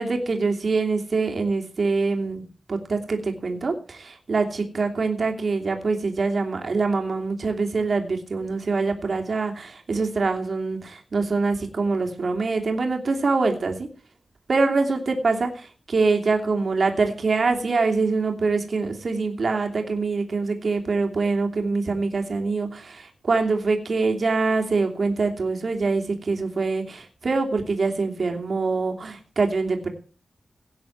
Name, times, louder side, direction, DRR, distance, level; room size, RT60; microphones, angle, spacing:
voice 1, 0.0-13.9 14.5-29.9, right 4 dB, 50° right, 4 dB, 2.9 m, -24 dB
17.5 x 9.4 x 4.7 m, 0.38 s
wide cardioid pair, 135°, 0 cm